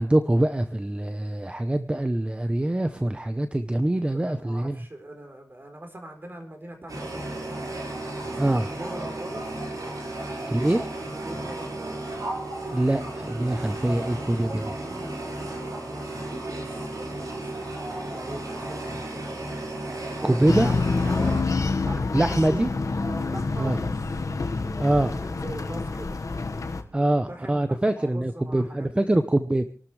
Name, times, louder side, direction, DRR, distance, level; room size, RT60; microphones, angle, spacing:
voice 1, 0.0-4.8 8.4-8.7 10.5-10.9 12.7-14.6 20.2-20.7 22.1-22.7 23.6-23.8 24.8-25.2 26.9-29.6, right 1 dB, 20° right, 9 dB, 0.8 m, -24 dB
voice 2, 4.1-7.8 8.2-9.4 11.1-12.0 14.2-21.4 21.8-22.6 23.1-24.0 24.6-26.2 27.0-29.2, right 1 dB, 35° right, 4 dB, 3.9 m, -42 dB
sound 1, 6.9-21.4, right 2 dB, 75° right, 4.8 m, -34 dB
sound 2, 20.5-26.8, left 3 dB, 65° left, 1.5 m, -27 dB
27.0 x 12.5 x 3.3 m, 0.41 s
wide cardioid pair, 90°, 6 cm